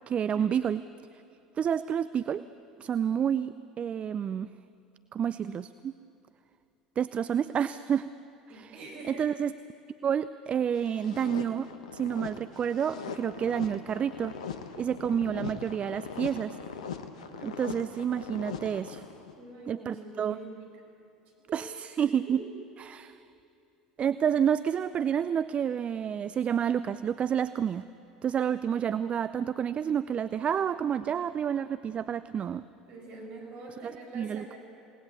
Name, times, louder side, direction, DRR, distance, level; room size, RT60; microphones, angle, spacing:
voice 1, 0.1-0.8 1.1-1.2 1.6-2.4 2.8-4.5 5.1-5.9 7.0-8.1 8.5-8.7 9.1-9.5 10.0-11.7 11.9-14.3 14.8-16.6 17.4-19.0 19.7-20.4 21.5-22.4 22.8-23.2 24.0-27.8 28.2-32.6 33.8-34.4, right 8 dB, 35° right, 15 dB, 0.5 m, -29 dB
voice 2, 8.5-9.3 19.3-20.6 21.5-21.6 22.0-22.5 32.9-34.6, right 2 dB, 50° right, 1 dB, 6.5 m, -45 dB
sound 1, 10.8-19.4, left 6 dB, 75° left, 1.2 m, -41 dB
28.0 x 19.0 x 7.1 m, 2.7 s
figure-of-eight pair, 70°, 4 cm